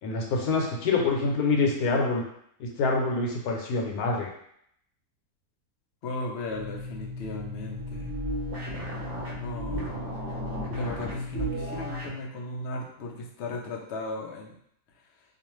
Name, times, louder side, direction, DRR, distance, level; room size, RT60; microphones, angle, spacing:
voice 1, 0.0-2.2 2.6-4.3, left 3 dB, 85° left, 0 dB, 1.1 m, -26 dB
voice 2, 6.0-8.2 9.4-10.0 10.7-14.6, left 2 dB, 70° left, -1 dB, 0.6 m, -36 dB
sound 1, 6.5-12.2, equal, 50° right, 0.8 m, -34 dB
2.5 x 2.3 x 3.0 m, 0.71 s
omnidirectional pair, 1.6 m